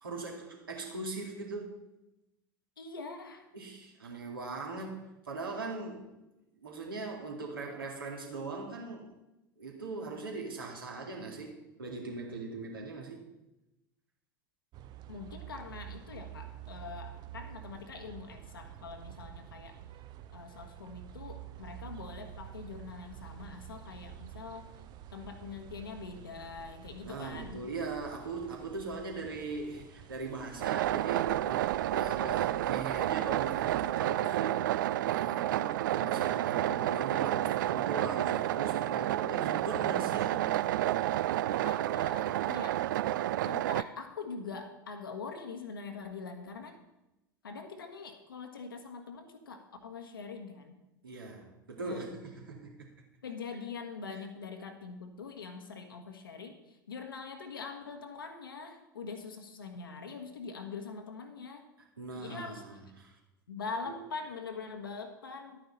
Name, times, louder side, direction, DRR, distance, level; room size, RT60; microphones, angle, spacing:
voice 1, 0.0-1.7 3.5-6.1 6.6-9.1 9.6-13.3 27.0-34.6 35.1-40.5 51.0-52.9 61.8-63.2 63.8-64.0, right 3 dB, 75° right, 0 dB, 2.4 m, -40 dB
voice 2, 2.8-3.5 15.1-19.8 20.3-24.7 25.1-27.6 41.4-42.8 43.4-46.8 47.4-50.7 51.8-52.0 53.2-61.7 62.2-62.6 63.5-65.6, left 4 dB, 75° left, 6 dB, 1.4 m, -43 dB
sound 1, 14.7-33.9, right 12 dB, 35° right, 0.7 m, -49 dB
sound 2, 30.6-43.8, right 14 dB, 60° right, 0.4 m, -30 dB
11.5 x 9.1 x 4.1 m, 0.95 s
figure-of-eight pair, 80°, 12 cm